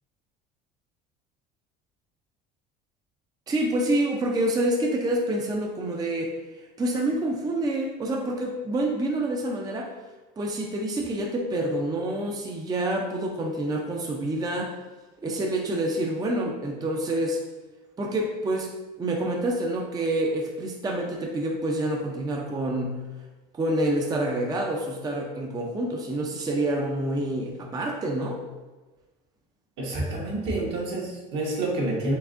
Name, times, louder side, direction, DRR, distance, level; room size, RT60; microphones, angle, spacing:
voice 1, 3.5-9.9 10.4-14.7 15.2-17.4 18.0-18.7 19.0-23.0 23.5-28.4, right 1 dB, 20° right, 0 dB, 0.5 m, -27 dB
voice 2, 29.8-32.1, right 2 dB, 65° right, -3 dB, 1.4 m, -28 dB
4.6 x 3.4 x 2.6 m, 1.2 s
supercardioid pair, 100°, 20 cm